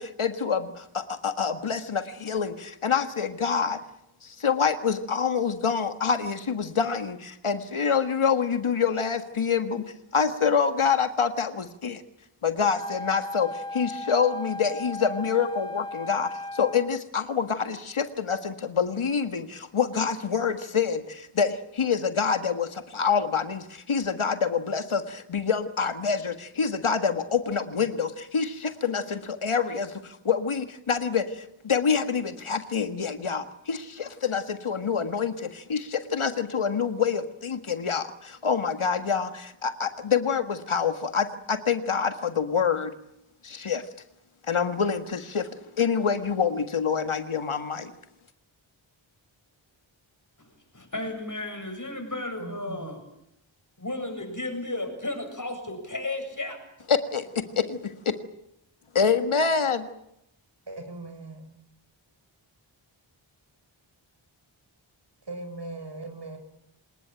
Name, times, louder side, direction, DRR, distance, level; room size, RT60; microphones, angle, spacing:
voice 1, 0.0-3.8 4.2-9.8 10.1-12.0 12.4-42.9 43.4-43.8 44.5-45.5 45.8-47.9 56.9-58.1 58.9-59.9, left 6 dB, 80° left, 9 dB, 1.8 m, -26 dB
Wind instrument woodwind instrument, 12.6-17.0, left 1 dB, 10° left, 1.1 m, -36 dB
voice 2, 50.4-53.0 53.8-56.6, left 2 dB, 40° left, 5 dB, 7.8 m, -34 dB
voice 3, 52.4-52.9 60.7-61.5 65.2-66.4, right 2 dB, 55° right, 6 dB, 6.9 m, -39 dB
26.5 x 19.5 x 9.0 m, 0.78 s
wide cardioid pair, 65°, 49 cm